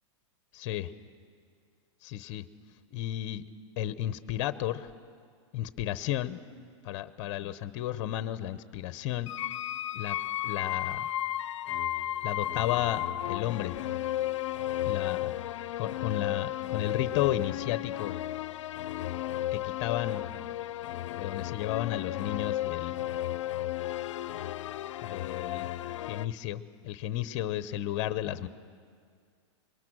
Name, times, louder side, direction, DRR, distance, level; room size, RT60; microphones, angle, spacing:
voice 1, 0.5-0.9 2.0-2.5 2.9-3.4 3.8-4.9 5.5-6.4 6.8-9.3 9.9-10.2 10.4-11.1 12.2-13.8 14.9-15.3 15.8-18.1 19.5-20.2 21.2-23.0 25.0-25.7 26.0-28.5, left 13 dB, 45° left, 14 dB, 0.8 m, -33 dB
sound 1, 9.3-26.3, left 13 dB, 80° left, 0.5 m, -33 dB
26.5 x 22.0 x 6.2 m, 2.1 s
supercardioid pair, 145°, 15 cm